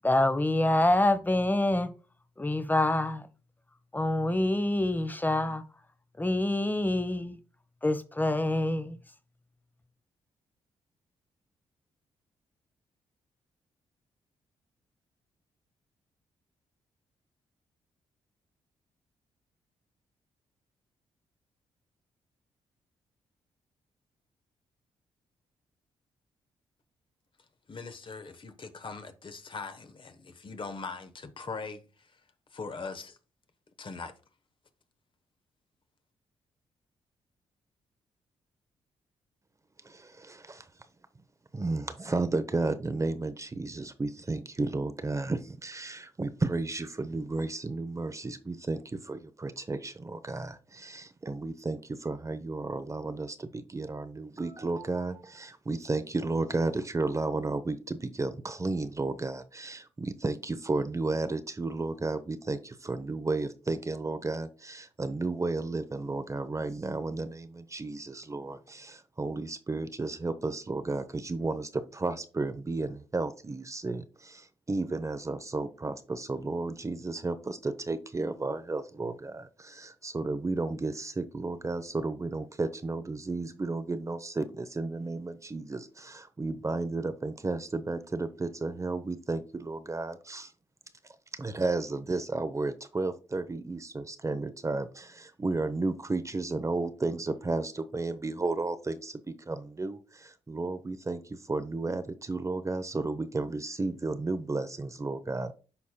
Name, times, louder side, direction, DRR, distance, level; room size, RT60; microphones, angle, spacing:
voice 1, 0.0-1.9 2.4-3.3 3.9-5.6 6.2-7.4 7.8-9.0, left 1 dB, 15° left, 0.9 m, -26 dB
voice 2, 27.7-31.8 32.5-33.2 33.8-34.1, left 4 dB, 45° left, 1.0 m, -40 dB
voice 3, 39.8-40.7 41.5-90.5 91.3-105.6, right 3 dB, 25° right, 0.8 m, -33 dB
11.0 x 4.1 x 2.2 m
supercardioid pair, 50°, 12 cm